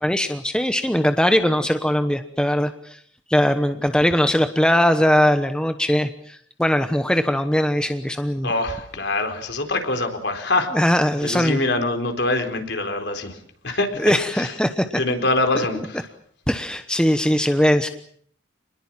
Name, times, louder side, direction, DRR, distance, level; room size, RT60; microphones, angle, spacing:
voice 1, 0.0-3.0 3.3-8.5 10.7-11.6 14.0-15.0 16.5-17.9, equal, 5° left, 8 dB, 1.0 m, -20 dB
voice 2, 8.4-10.7 11.2-13.4 13.6-14.6 15.0-16.1, left 2 dB, 60° left, 6 dB, 4.2 m, -24 dB
28.0 x 20.5 x 7.5 m, 0.62 s
head